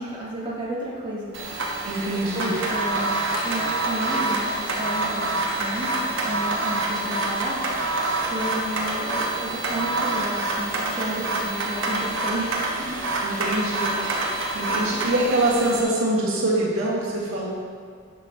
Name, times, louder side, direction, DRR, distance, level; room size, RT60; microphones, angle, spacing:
voice 1, 0.0-1.3 2.3-3.1 3.4-5.9 6.2-7.6 8.3-12.5 12.8-12.9, right 1 dB, 20° right, -7 dB, 1.5 m, -32 dB
sound 1, 1.3-15.8, right 2 dB, 60° right, 1.2 m, -27 dB
Typing, 1.8-7.0, left 1 dB, 40° left, 1.7 m, -38 dB
voice 2, 1.8-2.5 13.2-13.9 14.5-17.5, right 1 dB, 75° right, -6 dB, 1.9 m, -24 dB
10.5 x 7.0 x 3.0 m, 2.1 s
head